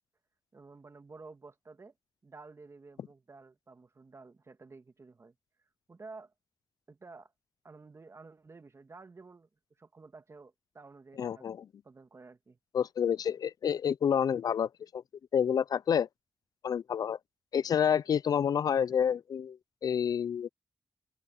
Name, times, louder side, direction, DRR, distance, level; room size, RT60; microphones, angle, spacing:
voice 1, 0.5-1.9 2.2-5.3 5.9-6.3 6.9-7.3 7.6-9.5 9.8-11.5 11.8-12.6, right 3 dB, 40° right, 2.4 m, -52 dB
voice 2, 11.2-11.6 12.7-15.0 15.3-16.1 16.6-17.2 17.5-20.5, left 8 dB, 70° left, 0.4 m, -29 dB
cardioid pair, 55°, 7 cm